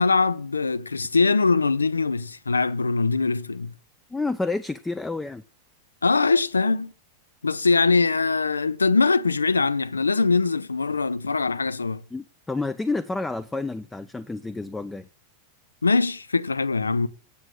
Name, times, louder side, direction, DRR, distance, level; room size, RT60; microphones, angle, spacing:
voice 1, 0.0-3.7 6.0-6.9 7.4-12.0 15.8-17.1, left 4 dB, 75° left, 0.5 m, -22 dB
voice 2, 4.1-5.4 12.1-15.1, left 3 dB, 10° left, 0.5 m, -29 dB
9.0 x 7.0 x 6.4 m
figure-of-eight pair, 90°, 0 cm